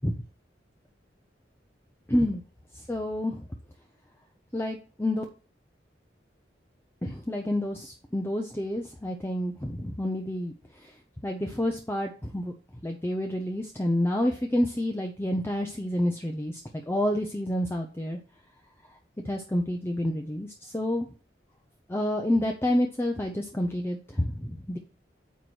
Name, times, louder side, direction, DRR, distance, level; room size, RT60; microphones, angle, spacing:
voice 1, 2.1-2.4 2.7-3.5 4.5-5.2 7.0-10.5 10.8-10.9 11.2-12.5 12.8-16.6 16.9-18.2 19.2-21.1 21.9-24.8, left 1 dB, 15° left, 2 dB, 0.6 m, -29 dB
9.2 x 3.1 x 6.3 m, 0.37 s
head